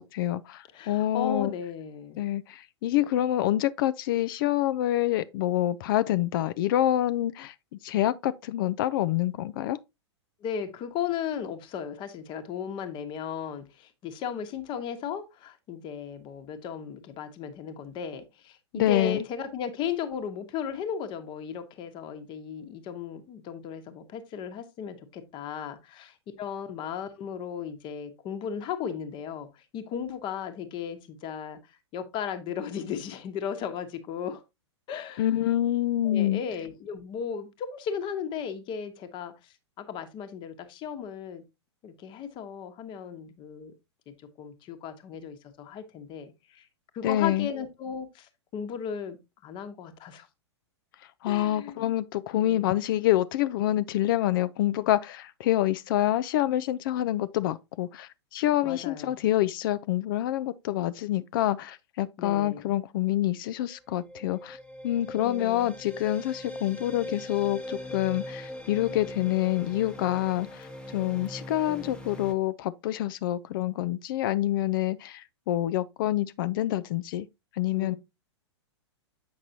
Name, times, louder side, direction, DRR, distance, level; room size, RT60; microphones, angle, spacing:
voice 1, 0.0-1.5 2.2-7.5 7.8-9.8 18.7-19.2 35.2-36.4 47.0-47.5 51.2-64.6 64.8-77.3 77.5-78.0, left 13 dB, 50° left, 0.4 m, -27 dB
voice 2, 0.7-2.2 10.4-31.6 31.9-34.4 34.9-35.3 36.0-39.3 39.8-41.4 41.8-43.7 44.1-46.7 46.9-49.2 49.4-50.3 51.3-51.9 52.4-52.7 58.6-59.2 62.2-62.7 65.2-65.7 71.7-72.0 77.7-78.0, left 7 dB, 35° left, 1.2 m, -36 dB
sound 1, 63.6-72.3, equal, 5° left, 1.0 m, -40 dB
7.8 x 5.9 x 2.7 m
figure-of-eight pair, 105°, 15 cm